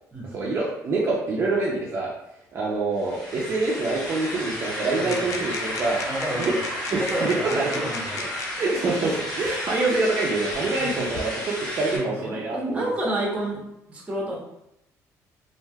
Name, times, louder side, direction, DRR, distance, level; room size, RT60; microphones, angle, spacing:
voice 1, 0.2-2.1 2.5-6.5 6.9-7.9 8.2-12.9, right 3 dB, 40° right, -5 dB, 0.5 m, -26 dB
sound 1, 2.9-12.0, equal, 15° left, 1.5 m, -32 dB
voice 2, 4.9-5.4 6.0-6.7 7.0-8.2 10.7-11.1 11.9-13.6 13.9-14.4, right 1 dB, 20° right, -3 dB, 0.9 m, -30 dB
sound 2, 5.1-8.7 9.7-9.8 10.5-11.2, left 4 dB, 55° left, 0.4 m, -38 dB
3.2 x 2.6 x 2.2 m, 0.82 s
cardioid pair, 120°, 6 cm